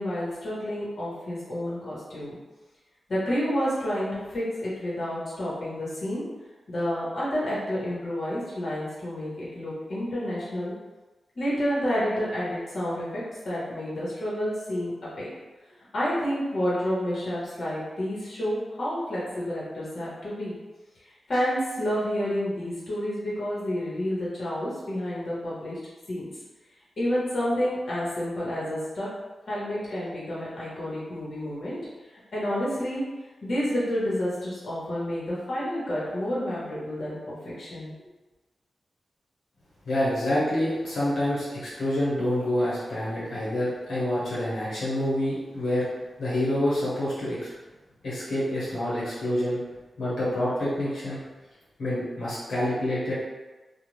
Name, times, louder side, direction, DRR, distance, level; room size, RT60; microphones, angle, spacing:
voice 1, 0.0-2.4 3.1-6.2 6.7-10.7 11.3-15.3 15.9-20.5 21.3-25.8 26.1-26.3 27.0-29.1 29.5-31.8 32.3-33.0 33.4-37.9, equal, 60° left, -8 dB, 1.2 m, -29 dB
voice 2, 39.9-45.8 46.2-47.5 48.0-49.6 50.0-51.2 51.8-53.1, left 1 dB, 85° left, -10 dB, 1.0 m, -27 dB
2.5 x 2.3 x 3.1 m, 1.2 s
wide cardioid pair, 85°, 0 cm